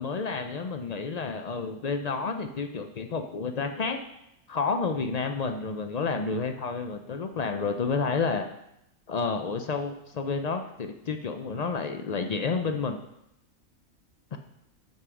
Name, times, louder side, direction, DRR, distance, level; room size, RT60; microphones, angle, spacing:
voice 1, 0.0-4.0 4.5-8.5 9.1-13.0 14.3-14.4, left 4 dB, 70° left, 6 dB, 0.3 m, -30 dB
9.3 x 5.5 x 5.0 m, 0.83 s
omnidirectional pair, 1.4 m